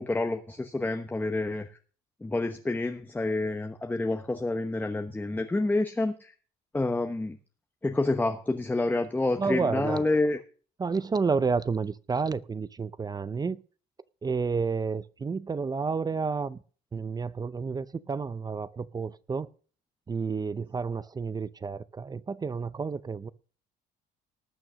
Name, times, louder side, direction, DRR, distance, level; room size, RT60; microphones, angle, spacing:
voice 1, 0.0-1.7 2.2-6.3 6.7-7.4 7.8-10.4, left 2 dB, 10° left, 6 dB, 1.0 m, -28 dB
voice 2, 9.4-10.1 10.8-13.6 14.2-16.6 16.9-19.5 20.1-23.3, right 5 dB, 25° right, 17 dB, 0.6 m, -30 dB
18.5 x 6.3 x 6.2 m, 0.41 s
cardioid pair, 110°, 17 cm